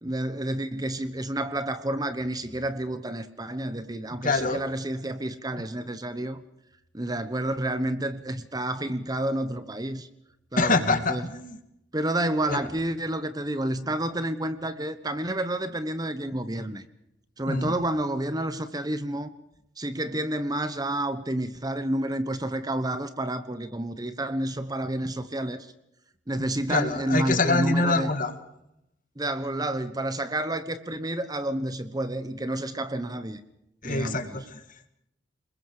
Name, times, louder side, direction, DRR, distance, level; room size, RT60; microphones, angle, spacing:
voice 1, 0.0-6.4 6.9-10.1 10.5-11.2 11.9-16.8 17.4-19.3 19.8-25.7 26.3-28.1 29.2-33.4 33.8-34.4, right 1 dB, 20° right, 11 dB, 1.1 m, -30 dB
voice 2, 4.2-4.6 10.6-11.6 12.5-12.6 17.5-17.8 26.4-28.3 33.8-34.9, left 3 dB, 45° left, 8 dB, 2.4 m, -26 dB
29.5 x 21.5 x 5.0 m, 0.82 s
head